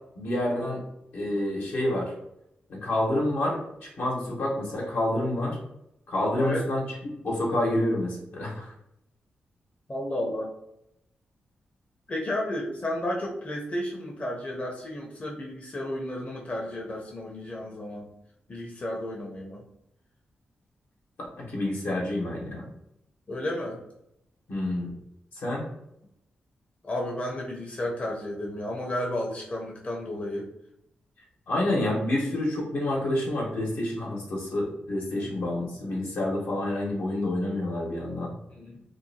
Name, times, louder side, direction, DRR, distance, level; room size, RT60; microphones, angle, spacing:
voice 1, 0.2-0.8 1.1-2.1 2.7-5.6 6.1-6.8 7.2-8.7 21.4-22.6 24.5-24.9 25.4-25.6 31.5-38.3, left 1 dB, 75° left, -4 dB, 1.0 m, -28 dB
voice 2, 6.3-6.7 9.9-10.5 12.1-18.1 18.5-19.6 23.3-23.8 26.8-30.4 35.1-35.3 38.5-38.8, left 1 dB, 35° left, -2 dB, 0.6 m, -32 dB
2.7 x 2.2 x 2.7 m, 0.80 s
cardioid pair, 60°, 4 cm